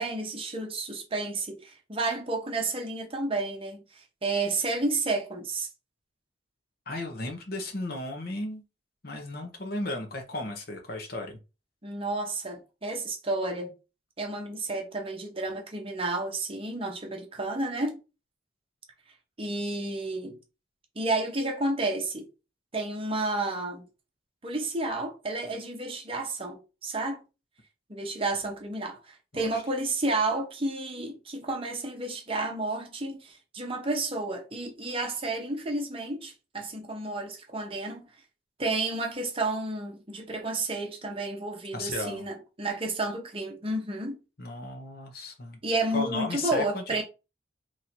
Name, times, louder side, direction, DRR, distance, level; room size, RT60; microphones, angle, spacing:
voice 1, 0.0-5.7 11.8-13.7 14.2-18.0 19.4-20.4 21.0-22.3 22.7-23.8 24.4-27.2 27.9-29.0 29.3-38.1 38.6-44.2 45.6-47.0, right 2 dB, 30° right, 0.8 m, -31 dB
voice 2, 6.9-8.6 9.0-11.4 29.3-29.6 41.7-42.2 44.4-45.6 45.9-47.0, left 2 dB, 50° left, 1.0 m, -35 dB
3.1 x 2.7 x 4.3 m
head